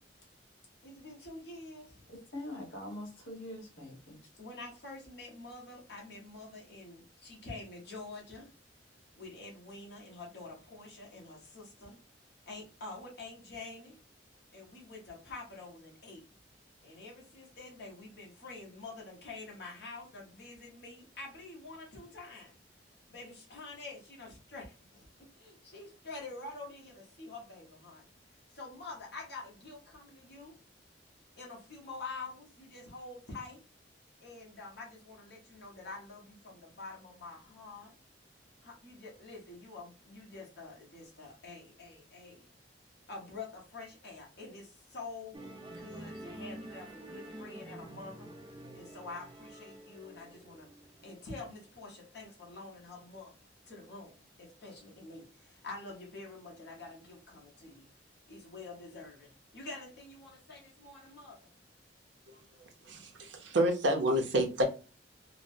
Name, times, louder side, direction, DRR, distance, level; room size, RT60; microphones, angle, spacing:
voice 1, 0.8-2.0 4.4-8.5 9.2-12.0 12.5-14.0 14.5-16.2 16.8-22.5 23.1-25.0 25.3-28.1 28.5-30.6 31.4-33.6 34.2-37.9 38.6-42.5 43.1-45.4 45.7-48.3 48.7-50.7 51.0-57.9 58.3-61.5, left 3 dB, 65° left, 1.1 m, -47 dB
voice 2, 2.1-4.2, left 1 dB, 85° left, 1.4 m, -43 dB
Musical instrument, 45.3-51.9, right 1 dB, 25° right, 0.4 m, -48 dB
voice 3, 62.8-64.6, right 1 dB, 75° right, 0.7 m, -29 dB
3.1 x 2.1 x 2.6 m
head